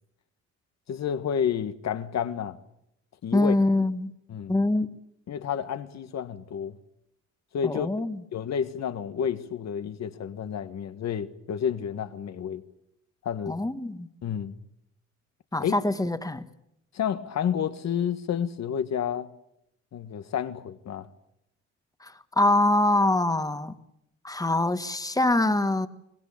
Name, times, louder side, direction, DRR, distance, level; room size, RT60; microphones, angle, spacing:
voice 1, 0.9-2.6 3.2-3.5 4.3-4.6 5.3-6.8 7.5-7.9 8.3-12.6 13.2-13.6 14.2-14.5 15.6-15.7 16.9-19.3 19.9-21.1, left 8 dB, 60° left, 1.5 m, -30 dB
voice 2, 3.3-4.1 4.5-4.9 7.6-8.2 13.5-14.1 15.5-16.4 22.0-23.7 24.2-25.9, left 2 dB, 10° left, 1.5 m, -24 dB
24.0 x 19.5 x 8.6 m
cardioid pair, 90°, 30 cm